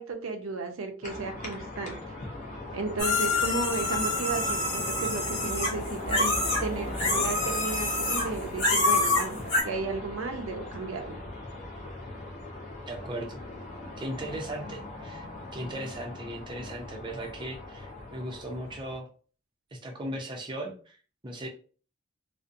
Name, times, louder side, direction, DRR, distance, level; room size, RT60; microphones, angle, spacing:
voice 1, 0.0-2.0 2.7-11.2, right 4 dB, 85° right, 5 dB, 0.5 m, -34 dB
sound 1, 1.0-19.0, left 2 dB, 35° left, 0.5 m, -39 dB
sound 2, 3.0-6.6 6.9-8.3 8.6-9.6, left 2 dB, 65° left, 1.1 m, -27 dB
voice 2, 12.9-13.4 14.0-15.2 15.5-19.1 19.7-21.0 21.2-21.5, right 1 dB, 20° right, 1 dB, 0.5 m, -37 dB
2.5 x 2.1 x 2.5 m, 0.40 s
head